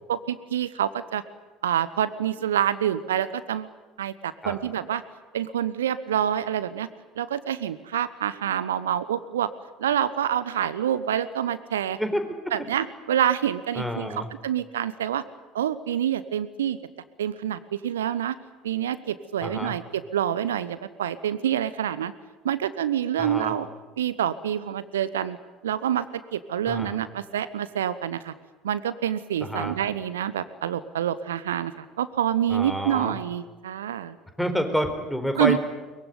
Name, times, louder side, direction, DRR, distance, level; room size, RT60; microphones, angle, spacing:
voice 1, 0.1-1.2 1.6-3.7 4.0-5.0 5.3-6.9 7.2-9.5 9.8-12.0 12.5-14.1 14.4-15.2 15.5-16.8 17.2-18.3 18.6-22.1 22.4-23.7 24.0-25.4 25.6-26.1 26.3-28.3 28.6-34.2 35.4-35.6, right 10 dB, 75° right, 15 dB, 0.9 m, -27 dB
voice 2, 12.0-12.5 13.7-14.3 19.4-19.7 23.2-23.6 26.7-27.0 29.4-29.7 32.5-33.2 34.4-35.6, equal, 5° left, 7 dB, 4.5 m, -28 dB
23.0 x 22.0 x 9.5 m, 1.2 s
figure-of-eight pair, 60°, 0 cm